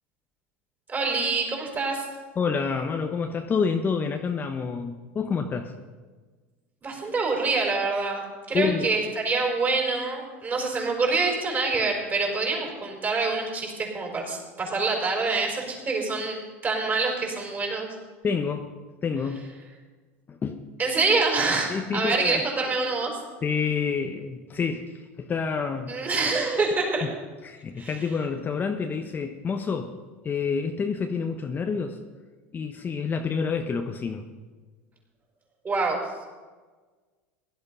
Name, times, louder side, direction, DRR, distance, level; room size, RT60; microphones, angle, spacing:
voice 1, 0.9-2.1 6.8-17.9 20.8-23.1 25.9-27.1 27.8-27.9 35.6-36.0, right 3 dB, 25° right, 0 dB, 5.1 m, -26 dB
voice 2, 2.4-5.7 8.5-8.9 18.2-18.7 19.0-19.5 20.3-20.6 21.7-22.5 23.4-26.0 27.0-27.1 27.4-29.9 30.2-32.0 32.5-34.2, left 5 dB, 25° left, 5 dB, 1.0 m, -28 dB
16.5 x 11.5 x 5.5 m, 1.4 s
supercardioid pair, 105°, 7 cm